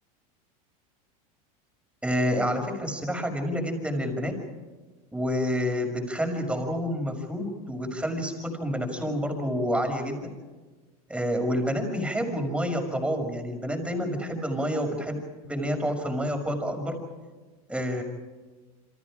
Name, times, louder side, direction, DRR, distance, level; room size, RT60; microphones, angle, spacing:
voice 1, 2.0-4.3 5.1-10.3 11.1-15.2 15.4-17.0 17.7-18.0, equal, 5° right, 4 dB, 6.0 m, -28 dB
29.0 x 26.0 x 5.0 m, 1.3 s
supercardioid pair, 120°, 19 cm